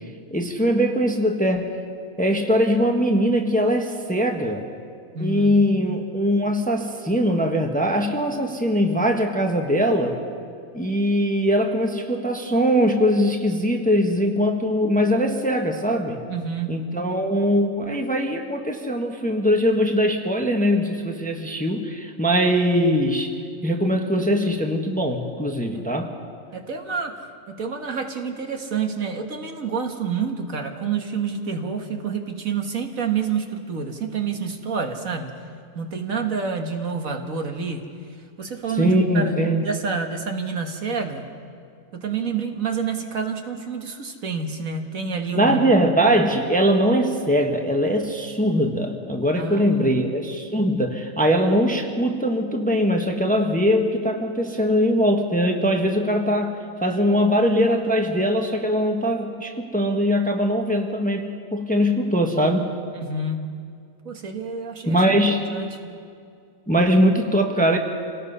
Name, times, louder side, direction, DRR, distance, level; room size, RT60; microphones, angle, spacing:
voice 1, 0.3-1.7 2.2-4.7 5.2-10.2 10.7-16.2 16.7-23.3 23.6-26.1 38.8-39.6 45.3-62.7 64.8-65.5 66.7-67.8, equal, 5° left, 3 dB, 1.2 m, -21 dB
voice 2, 5.1-5.6 16.3-16.7 25.7-25.9 26.5-27.2 27.5-35.3 35.8-37.8 38.4-41.2 41.9-45.9 49.4-50.0 63.0-63.4 64.1-65.2 65.5-65.8, right 5 dB, 60° right, 4 dB, 1.9 m, -28 dB
28.0 x 18.5 x 5.6 m, 2.3 s
omnidirectional pair, 1.6 m